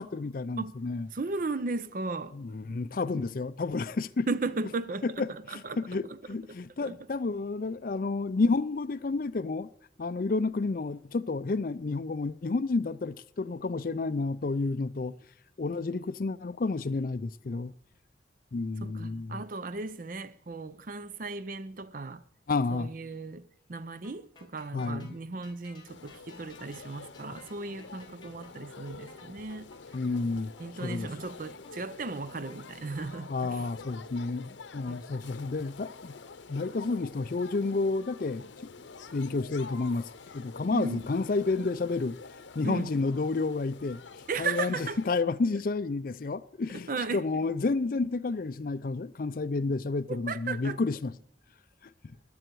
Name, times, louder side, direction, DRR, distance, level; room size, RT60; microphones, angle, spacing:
voice 1, 0.0-1.1 2.3-4.3 5.0-9.7 10.0-15.1 15.6-17.7 18.5-19.4 22.5-22.9 24.7-25.2 29.9-30.5 30.8-31.1 33.3-36.2 36.5-38.7 39.1-42.2 42.6-44.0 44.4-51.1, left 3 dB, 50° left, 0.4 m, -30 dB
voice 2, 1.1-2.3 3.1-3.2 4.3-5.8 6.1-6.2 6.8-7.0 17.5-17.7 18.8-22.2 22.7-29.7 30.6-33.7 34.9-35.0 40.7-41.0 42.6-42.9 44.3-45.0 46.9-47.2 50.1-50.8, right 3 dB, 45° right, 0.6 m, -36 dB
sound 1, 24.0-32.6, left 3 dB, 25° left, 1.5 m, -57 dB
sound 2, 25.9-45.2, left 4 dB, 85° left, 0.7 m, -48 dB
20.0 x 7.8 x 4.7 m
head